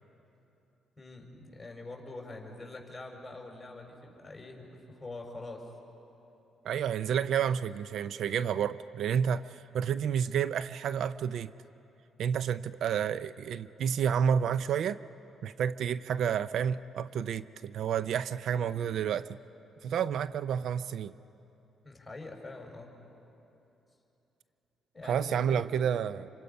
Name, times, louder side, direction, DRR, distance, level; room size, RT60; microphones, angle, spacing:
voice 1, 1.0-5.6 18.5-18.7 21.8-22.9 24.9-25.7 26.0-26.2, left 2 dB, 15° left, 1 dB, 4.7 m, -45 dB
voice 2, 6.6-11.5 12.2-15.0 15.4-19.4 19.8-21.1 25.0-26.3, right 8 dB, 70° right, 15 dB, 0.4 m, -30 dB
27.0 x 25.0 x 5.3 m, 2.9 s
cardioid pair, 90°, 0 cm